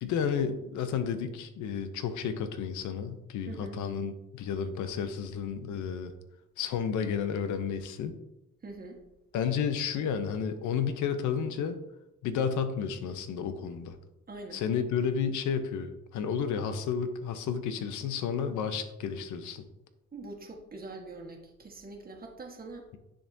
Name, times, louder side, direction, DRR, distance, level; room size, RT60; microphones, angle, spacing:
voice 1, 0.0-6.1 6.6-8.2 9.3-11.8 12.2-14.0 14.5-19.6, left 7 dB, 80° left, 9 dB, 0.7 m, -31 dB
voice 2, 3.5-3.8 8.6-9.0 14.3-14.6 20.1-22.9, right 2 dB, 30° right, 0 dB, 1.4 m, -43 dB
10.0 x 3.6 x 2.7 m, 0.89 s
cardioid pair, 90°, 30 cm